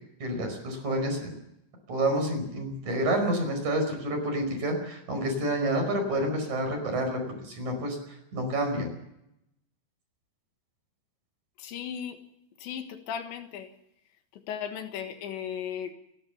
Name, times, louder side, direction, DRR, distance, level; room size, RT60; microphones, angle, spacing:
voice 1, 0.2-1.3 1.9-8.9, right 1 dB, 40° right, 4 dB, 6.1 m, -29 dB
voice 2, 11.6-12.2 12.6-13.7 14.3-15.9, left 8 dB, 75° left, 6 dB, 3.7 m, -36 dB
30.0 x 12.5 x 7.1 m, 0.81 s
omnidirectional pair, 5.3 m